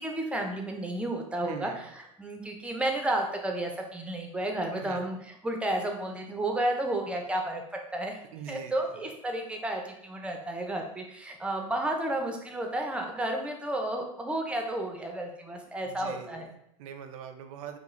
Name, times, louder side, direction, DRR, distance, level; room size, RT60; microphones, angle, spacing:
voice 1, 0.0-1.9 2.2-5.2 5.4-7.6 7.9-8.2 8.5-16.5, right 1 dB, 5° right, 2 dB, 0.4 m, -32 dB
voice 2, 1.4-1.9 4.8-5.1 8.3-9.1 15.8-17.8, right 8 dB, 70° right, 8 dB, 0.4 m, -43 dB
2.3 x 2.3 x 3.0 m, 0.78 s
supercardioid pair, 115°, 18 cm